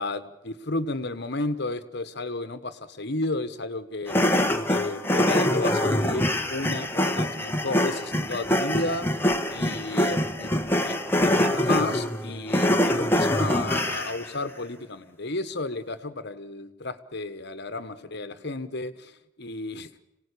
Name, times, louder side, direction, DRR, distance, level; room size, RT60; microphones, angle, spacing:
voice 1, 0.0-4.4 4.7-9.2 9.5-10.5 10.8-19.9, left 2 dB, 55° left, 11 dB, 1.3 m, -32 dB
sound 1, 4.1-14.3, left 1 dB, 10° left, 1.3 m, -24 dB
26.5 x 18.0 x 8.4 m, 0.91 s
head